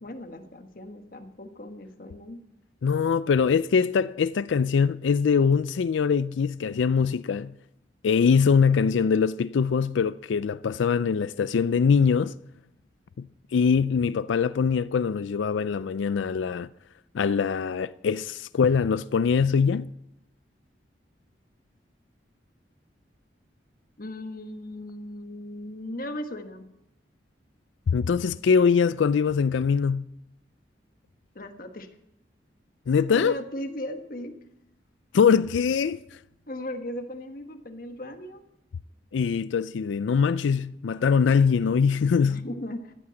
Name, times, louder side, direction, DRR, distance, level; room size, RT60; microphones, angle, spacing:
voice 1, 0.0-2.4 24.0-26.6 31.3-31.9 33.1-34.3 36.5-38.4 42.3-42.9, left 1 dB, 50° left, 1.4 m, -37 dB
voice 2, 2.8-7.5 8.0-12.4 13.2-13.3 13.5-16.7 17.1-19.9 27.9-30.1 32.9-33.4 35.1-36.0 39.1-42.4, left 6 dB, 90° left, 0.4 m, -23 dB
14.5 x 8.6 x 7.6 m
head